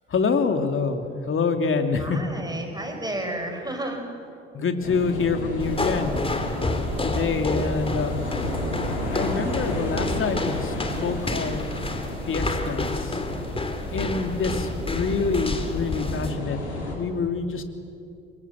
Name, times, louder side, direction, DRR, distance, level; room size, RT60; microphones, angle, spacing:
voice 1, 0.1-2.2 4.5-6.3 6.6-8.3 9.0-10.7 11.0-11.7 12.3-13.2 13.9-16.6 16.9-17.6, left 4 dB, 40° left, 6 dB, 2.9 m, -26 dB
voice 2, 2.0-4.1 13.8-14.1, right 1 dB, 10° right, 4 dB, 5.6 m, -32 dB
sound 1, 4.8-17.0, left 1 dB, 90° left, 4.0 m, -32 dB
sound 2, 5.6-16.4, left 2 dB, 15° left, 3.0 m, -30 dB
27.5 x 22.5 x 7.6 m, 2.5 s
figure-of-eight pair, 55°, 33 cm